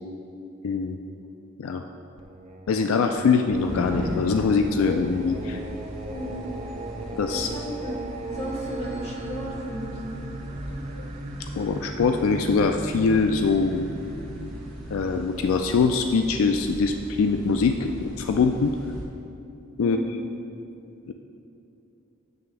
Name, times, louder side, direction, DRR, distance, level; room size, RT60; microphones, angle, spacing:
voice 1, 0.6-1.0 1.6-1.8 2.7-5.6 7.2-7.5 11.4-13.9 14.9-18.7 19.8-20.0 21.1-21.2, left 4 dB, 85° left, 5 dB, 0.4 m, -23 dB
Singing, 2.2-16.9, right 2 dB, 30° right, 0.5 m, -38 dB
sound 1, 3.5-19.0, equal, ahead, 1.9 m, -38 dB
voice 2, 6.0-6.5 7.3-8.0 8.3-10.2 19.8-20.3, equal, 30° left, -2 dB, 1.1 m, -35 dB
9.2 x 3.4 x 6.7 m, 2.8 s
head